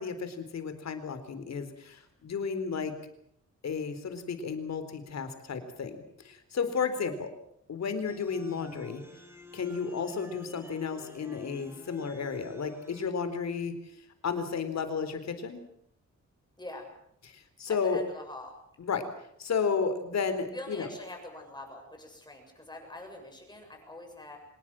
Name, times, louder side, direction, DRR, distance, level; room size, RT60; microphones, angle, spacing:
voice 1, 0.0-2.9 3.6-7.3 7.7-9.0 9.5-13.7 14.2-15.6 17.3-18.0 18.8-19.1 19.4-20.9, left 5 dB, 65° left, 10 dB, 4.1 m, -33 dB
sound 1, 8.0-13.1, equal, 10° right, 2.9 m, -50 dB
voice 2, 9.7-10.1 16.6-16.8 17.7-18.5 20.5-24.4, left 2 dB, 15° left, 3 dB, 7.3 m, -45 dB
25.5 x 20.0 x 7.7 m, 0.71 s
wide cardioid pair, 130°, 29 cm